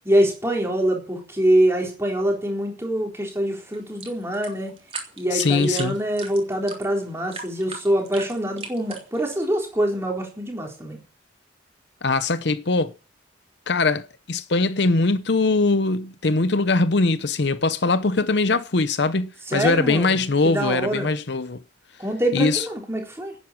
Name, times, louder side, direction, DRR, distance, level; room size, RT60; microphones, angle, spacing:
voice 1, 0.0-4.7 5.2-11.0 19.5-20.2 20.4-21.2 22.0-23.3, right 1 dB, 15° right, 3.9 m, -24 dB
sound 1, 3.7-9.4, right 4 dB, 30° right, 3.5 m, -38 dB
voice 2, 5.3-5.9 12.0-12.9 13.7-21.6 22.3-22.6, left 3 dB, 60° left, 0.8 m, -21 dB
11.0 x 9.4 x 8.7 m
head